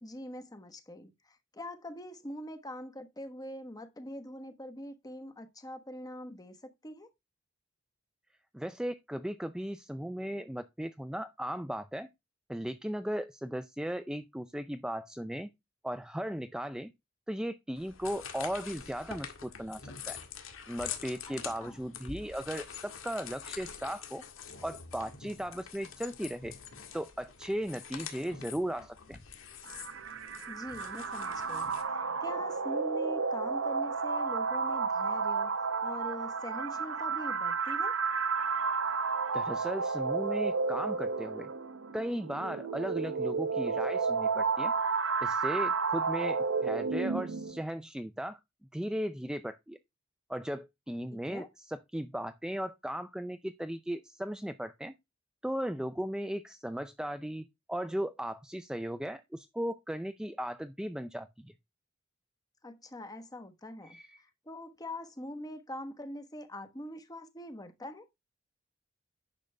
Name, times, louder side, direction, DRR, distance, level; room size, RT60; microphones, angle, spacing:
voice 1, 0.0-7.1 21.3-21.8 30.5-38.0 51.1-51.5 62.6-68.0, left 1 dB, 20° left, 1.2 m, -43 dB
voice 2, 8.5-12.1 12.5-15.5 15.8-16.9 17.3-20.2 20.7-24.2 24.6-26.5 26.9-29.2 39.3-41.5 41.9-44.7 45.2-48.4 48.7-49.8 50.3-54.9 55.4-61.5 63.8-64.2, equal, 5° right, 0.4 m, -37 dB
sound 1, 17.8-31.8, left 7 dB, 85° left, 1.9 m, -45 dB
sound 2, 29.6-47.6, right 4 dB, 75° right, 0.9 m, -32 dB
10.5 x 6.7 x 3.4 m
head